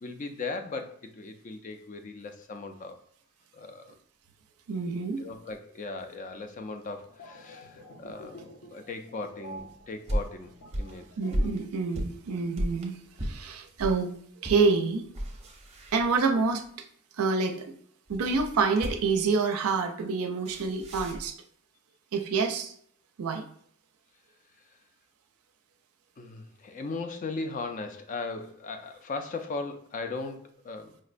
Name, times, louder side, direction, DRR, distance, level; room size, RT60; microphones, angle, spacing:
voice 1, 0.0-3.0 3.5-3.9 5.2-10.5 10.8-11.1 26.2-31.0, left 3 dB, 35° left, 7 dB, 0.3 m, -38 dB
voice 2, 4.7-5.2 11.2-15.0 15.9-16.6 17.2-17.6 18.1-21.4 22.1-22.7 23.2-23.4, right 4 dB, 75° right, 5 dB, 0.5 m, -27 dB
sound 1, 7.1-11.8 12.1-12.3, equal, 80° left, 0.7 m, -46 dB
sound 2, 9.6-14.0 14.4-14.7 15.0-16.5 18.1-19.3 20.4-21.3, equal, 30° right, 0.6 m, -34 dB
5.0 x 2.1 x 2.5 m, 0.64 s
head